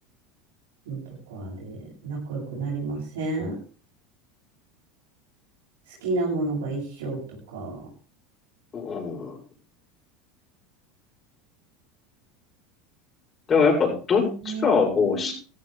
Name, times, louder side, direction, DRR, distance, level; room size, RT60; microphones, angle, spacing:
voice 1, 1.3-3.6 5.9-7.9 14.2-15.3, right 3 dB, 80° right, -6 dB, 7.9 m, -31 dB
voice 2, 8.7-9.4 13.5-15.3, left 5 dB, 30° left, 0 dB, 7.1 m, -22 dB
15.5 x 14.0 x 3.5 m, 0.38 s
hypercardioid pair, 90°, 0 cm